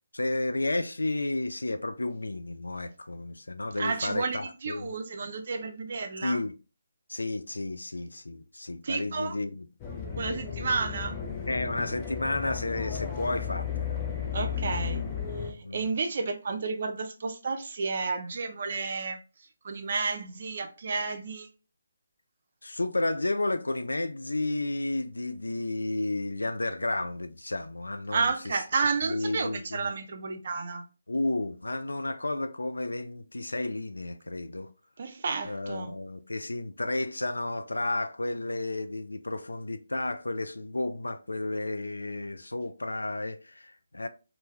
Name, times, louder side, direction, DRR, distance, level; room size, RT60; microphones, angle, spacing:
voice 1, 0.1-4.9 6.2-6.5 7.1-9.7 11.5-14.0 14.4-14.5 15.6-15.9 22.6-28.6 29.0-29.9 31.1-34.7 35.4-44.1, left 2 dB, 80° left, 0.3 m, -32 dB
voice 2, 3.8-6.4 8.8-9.3 10.1-11.2 14.3-15.0 15.5-19.2 19.6-21.5 28.1-30.8 35.0-35.9, right 4 dB, 50° right, 0.5 m, -31 dB
sound 1, 9.8-15.5, left 7 dB, 20° left, 0.5 m, -34 dB
2.2 x 2.1 x 3.2 m
figure-of-eight pair, 145°, 0 cm